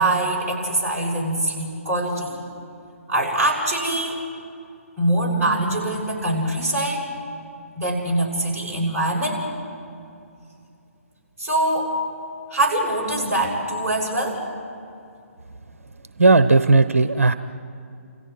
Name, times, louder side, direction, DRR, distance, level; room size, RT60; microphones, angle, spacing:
voice 1, 0.0-2.4 3.1-4.2 5.0-7.1 7.8-9.4 11.4-11.9 12.5-14.4, right 1 dB, 15° right, -5 dB, 6.4 m, -23 dB
voice 2, 16.2-17.3, right 3 dB, 65° right, 12 dB, 0.9 m, -15 dB
30.0 x 27.5 x 4.7 m, 2.6 s
figure-of-eight pair, 135°, 8 cm